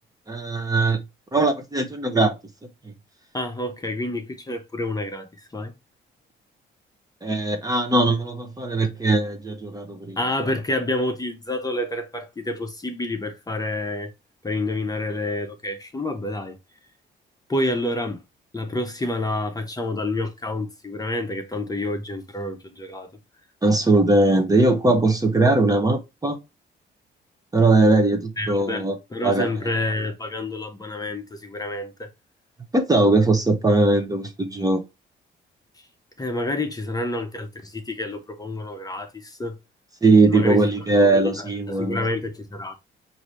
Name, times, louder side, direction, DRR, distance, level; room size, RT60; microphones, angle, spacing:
voice 1, 0.3-1.0 1.3-2.4 7.2-10.2 23.6-26.4 27.5-29.0 29.2-29.5 32.7-34.8 40.0-42.1, right 2 dB, 20° right, 0.8 m, -20 dB
voice 2, 3.3-5.7 10.2-14.1 14.4-16.5 17.5-18.2 18.5-23.1 28.4-28.9 29.1-32.1 36.2-39.6 40.3-40.7 40.9-41.2 41.7-42.7, left 1 dB, 20° left, 0.8 m, -28 dB
4.8 x 2.7 x 3.0 m
cardioid pair, 90°, 20 cm